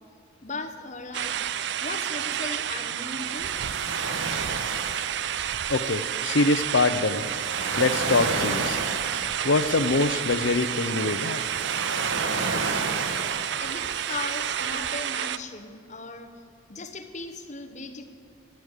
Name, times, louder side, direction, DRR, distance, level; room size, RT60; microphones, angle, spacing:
voice 1, 0.4-1.4 1.8-3.5 13.6-16.3 16.7-18.0, left 3 dB, 35° left, 7 dB, 1.0 m, -37 dB
sound 1, 1.1-15.4, right 10 dB, 60° right, 0.4 m, -30 dB
sound 2, 1.2-14.9, right 3 dB, 80° right, 1.2 m, -34 dB
voice 2, 5.7-7.2 7.8-8.8 9.4-11.4, left 3 dB, 70° left, 12 dB, 0.7 m, -24 dB
13.5 x 9.4 x 8.2 m, 2.5 s
head